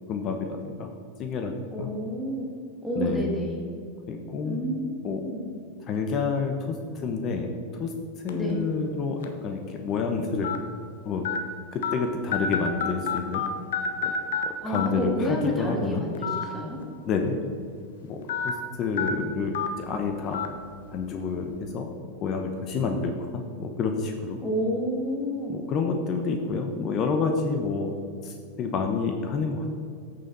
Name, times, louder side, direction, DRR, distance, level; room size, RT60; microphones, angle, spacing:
voice 1, 0.1-0.9 1.2-1.9 3.0-3.3 4.1-4.7 5.0-5.2 5.8-10.5 11.0-11.3 11.7-13.4 14.0-14.2 14.4-16.0 17.0-17.4 18.1-20.4 20.9-21.9 22.2-24.4 25.5-27.9 28.2-29.7, left 4 dB, 35° left, 5 dB, 0.7 m, -29 dB
voice 2, 1.7-2.5 2.8-3.6 4.4-4.9 5.2-5.4 8.3-8.6 14.6-16.8 24.4-25.5, equal, 5° left, -2 dB, 1.7 m, -29 dB
sound 1, 8.3-8.5 9.2-9.3 10.4-10.6 11.2-11.4 11.8-11.9 12.3-13.5 13.7-14.4 14.7-14.9 16.1-16.4 16.8-16.9 18.3-18.5 19.0-19.1 19.5-19.7 20.3-20.5, left 8 dB, 80° left, 0.9 m, -28 dB
8.6 x 6.9 x 3.9 m, 2.3 s
supercardioid pair, 135°, 0 cm